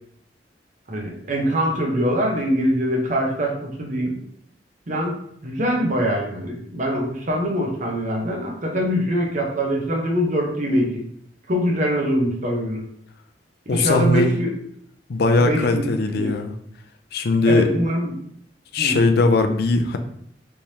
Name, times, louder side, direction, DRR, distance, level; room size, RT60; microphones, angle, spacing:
voice 1, 0.9-4.2 4.9-5.2 5.4-11.0 11.5-12.8 13.7-14.5 15.4-15.9 16.2-16.3 17.5-18.2 18.8-18.9, equal, 45° right, 0 dB, 0.8 m, -23 dB
voice 2, 13.7-14.3 15.1-16.5 17.1-17.7 18.7-20.0, left 3 dB, 60° left, 7 dB, 0.5 m, -19 dB
3.4 x 3.1 x 2.8 m, 0.68 s
head